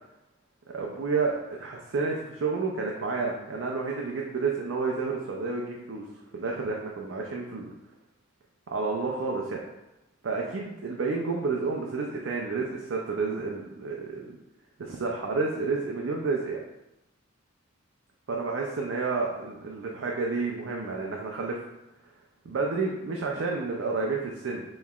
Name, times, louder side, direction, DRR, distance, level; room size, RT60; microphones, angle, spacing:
voice 1, 0.7-6.0 6.4-7.7 8.7-9.6 10.2-14.3 14.8-16.6 18.3-21.6 22.4-24.6, right 4 dB, 70° right, -1 dB, 0.5 m, -30 dB
5.5 x 3.1 x 2.3 m, 0.95 s
head